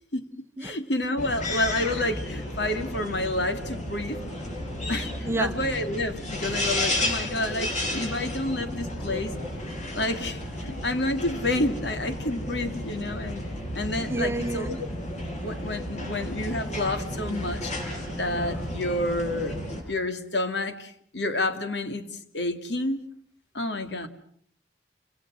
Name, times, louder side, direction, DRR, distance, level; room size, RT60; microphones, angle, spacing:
voice 1, 0.6-4.2 4.9-9.3 9.9-13.5 13.7-14.7 15.4-17.7 18.2-19.6 19.9-22.1 22.3-23.0 23.5-24.1, left 1 dB, 70° left, 8 dB, 2.5 m, -29 dB
sound 1, 1.2-19.8, left 1 dB, 45° left, 6.9 m, -33 dB
voice 2, 14.1-14.8, right 2 dB, 15° right, 10 dB, 1.0 m, -29 dB
30.0 x 25.5 x 6.4 m, 0.62 s
head